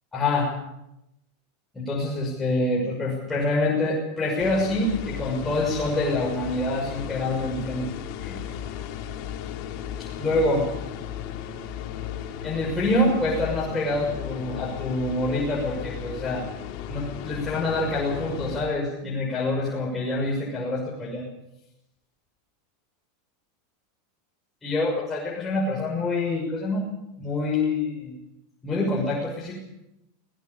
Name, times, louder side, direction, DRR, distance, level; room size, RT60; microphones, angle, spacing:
voice 1, 0.1-0.5 1.7-7.9 8.2-8.4 10.0-10.7 12.4-16.5 16.9-21.3 24.6-26.9 27.2-28.1 28.6-29.6, left 2 dB, 10° left, -3 dB, 6.4 m, -26 dB
sound 1, 4.4-18.6, left 9 dB, 50° left, 4.0 m, -35 dB
19.5 x 19.5 x 8.5 m, 0.87 s
supercardioid pair, 135°, 0 cm